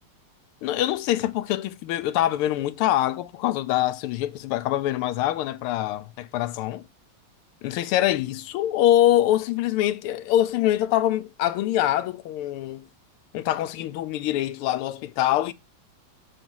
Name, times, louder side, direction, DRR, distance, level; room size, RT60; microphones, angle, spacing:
voice 1, 0.6-6.8 7.6-12.9 13.3-15.5, left 13 dB, 85° left, 1.5 m, -24 dB
7.2 x 3.3 x 6.1 m
omnidirectional pair, 2.4 m